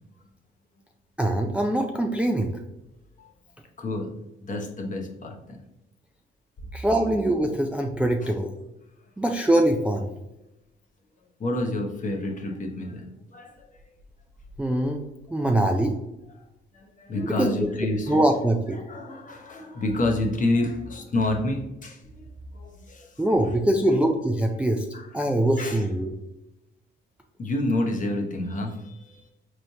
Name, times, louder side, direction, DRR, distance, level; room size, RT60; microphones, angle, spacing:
voice 1, 1.2-2.5 6.7-8.5 9.2-10.1 14.6-15.0 15.3-16.0 17.2-18.8 23.2-24.9 25.1-26.1, right 1 dB, 5° right, 3 dB, 0.3 m, -23 dB
voice 2, 3.8-4.1 4.4-5.3 8.2-8.3 11.4-13.1 13.3-13.7 15.4-15.8 16.7-18.2 18.8-22.0 22.5-23.1 24.9-25.1 25.6-25.8 27.4-29.3, left 2 dB, 40° left, 1 dB, 0.9 m, -28 dB
4.1 x 3.1 x 2.7 m, 0.94 s
cardioid pair, 90°, 20 cm